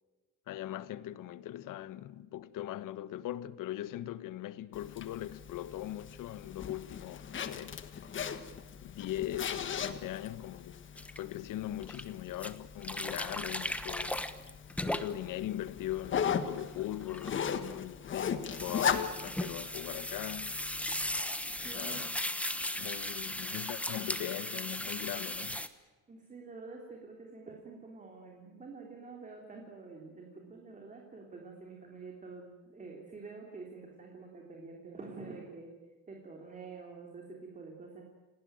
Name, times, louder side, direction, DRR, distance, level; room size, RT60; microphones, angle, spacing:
voice 1, 0.5-7.8 8.8-10.8 11.2-14.2 14.8-20.6 21.6-22.2 22.8-25.6, left 13 dB, 85° left, 1.2 m, -40 dB
Zipper (clothing), 4.7-21.2, left 7 dB, 40° left, 1.5 m, -38 dB
sound 1, 11.0-11.2 11.8-12.0 12.4-15.4 15.8-17.7 18.5-25.7, left 1 dB, 5° left, 1.1 m, -37 dB
voice 2, 21.5-22.0 26.1-35.7 36.1-38.0, right 4 dB, 25° right, 3.6 m, -47 dB
29.5 x 18.5 x 9.1 m
cardioid pair, 175°, 31 cm